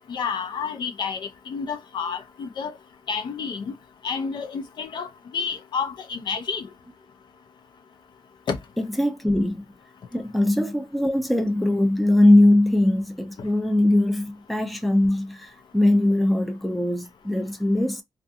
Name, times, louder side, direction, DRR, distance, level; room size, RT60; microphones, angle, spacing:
voice 1, 0.1-2.7 3.1-3.6 4.0-6.7 8.5-8.6, left 6 dB, 65° left, 0.6 m, -30 dB
voice 2, 8.8-9.6 10.1-18.0, left 1 dB, ahead, 0.5 m, -21 dB
2.5 x 2.4 x 2.5 m
cardioid pair, 115°, 8 cm